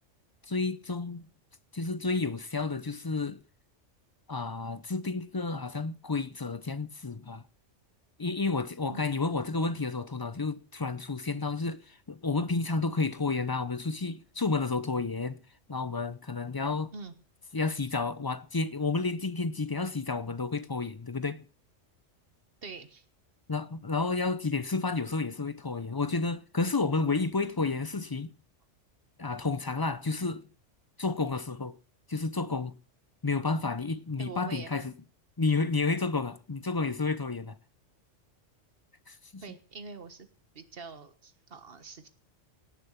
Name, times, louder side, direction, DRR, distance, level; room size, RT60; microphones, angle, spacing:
voice 1, 0.4-1.3 1.7-3.4 4.3-7.4 8.2-15.4 15.7-16.9 17.5-21.4 23.5-28.3 29.2-30.4 31.0-31.8 32.1-32.8 33.2-34.9 35.4-37.6 39.1-39.4, left 3 dB, 30° left, 0.5 m, -31 dB
voice 2, 22.6-23.0 34.2-34.7 39.4-40.3 40.5-42.1, right 4 dB, 50° right, 1.6 m, -44 dB
18.0 x 6.9 x 5.8 m
omnidirectional pair, 1.3 m